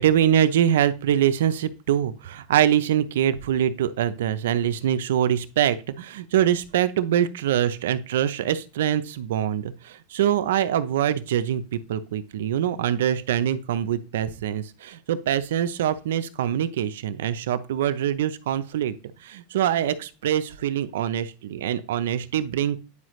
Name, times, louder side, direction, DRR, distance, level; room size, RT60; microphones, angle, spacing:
voice 1, 0.0-22.8, right 10 dB, 85° right, 13 dB, 0.6 m, -24 dB
9.6 x 4.8 x 3.2 m, 0.32 s
supercardioid pair, 125°, 0 cm